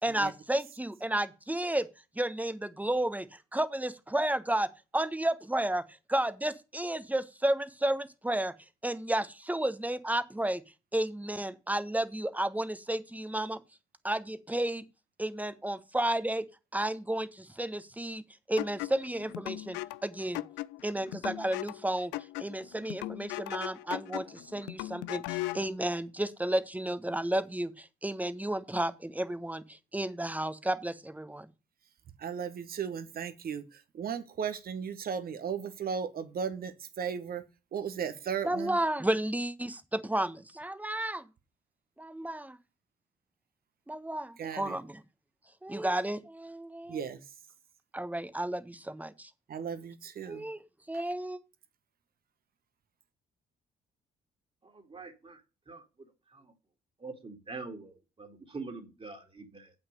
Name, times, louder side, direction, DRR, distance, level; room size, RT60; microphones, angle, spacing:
voice 1, 0.0-1.9 2.1-5.8 6.1-8.5 8.8-10.6 10.9-13.6 14.0-14.8 15.2-16.4 16.7-18.2 18.5-20.4 20.8-22.1 22.4-31.5 38.5-41.2 42.0-42.6 43.9-44.9 45.6-47.0 47.9-49.3 50.3-50.6 50.9-51.4, right 1 dB, 10° right, 1.3 m, -32 dB
sound 1, 18.6-25.7, left 18 dB, 75° left, 0.5 m, -39 dB
voice 2, 32.2-37.4 37.7-38.8 44.4-44.8 46.9-47.4 49.5-50.5 50.9-51.0, right 7 dB, 55° right, 1.6 m, -36 dB
voice 3, 54.6-55.4 55.7-55.8 56.3-56.5 57.0-59.7, right 3 dB, 30° right, 2.7 m, -44 dB
8.1 x 6.2 x 6.6 m
hypercardioid pair, 50°, 18 cm